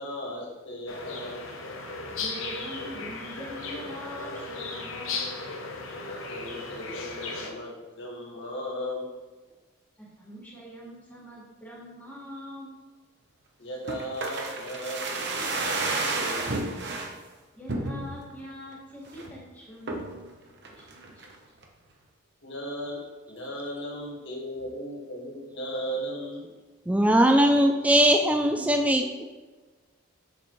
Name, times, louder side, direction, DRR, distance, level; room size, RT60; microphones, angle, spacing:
voice 1, 0.0-1.4 6.0-9.1 9.4-9.5 13.6-15.8 16.1-16.7 21.2-21.3 22.4-26.5, equal, 60° left, -2 dB, 1.7 m, -37 dB
sound 1, 0.9-7.5, left 3 dB, 75° left, 0.9 m, -36 dB
voice 2, 2.1-5.2 10.0-12.8 17.5-20.3 20.7-21.4, equal, 10° left, -6 dB, 1.8 m, -43 dB
sound 2, 13.9-17.1 17.7-18.3 18.7-18.8 19.1-19.4 19.9-20.2 20.6-21.3 21.6-21.7, right 3 dB, 55° right, 0.9 m, -31 dB
voice 3, 26.9-29.3, right 1 dB, 5° right, 4 dB, 0.3 m, -20 dB
6.9 x 6.5 x 3.1 m, 1.3 s
head